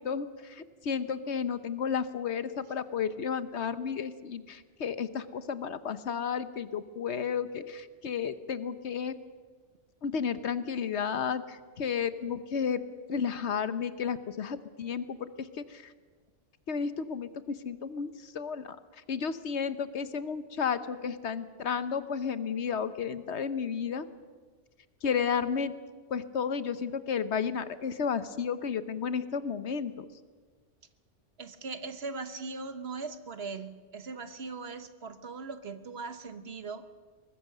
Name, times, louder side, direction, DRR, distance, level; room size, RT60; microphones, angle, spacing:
voice 1, 0.0-9.2 10.0-12.8 13.1-15.9 16.7-18.8 19.1-24.0 25.0-25.7 26.1-30.1, left 6 dB, 65° left, 13 dB, 1.1 m, -32 dB
voice 2, 31.4-36.9, right 4 dB, 55° right, 11 dB, 1.3 m, -40 dB
23.0 x 20.0 x 6.7 m, 1.5 s
omnidirectional pair, 1.3 m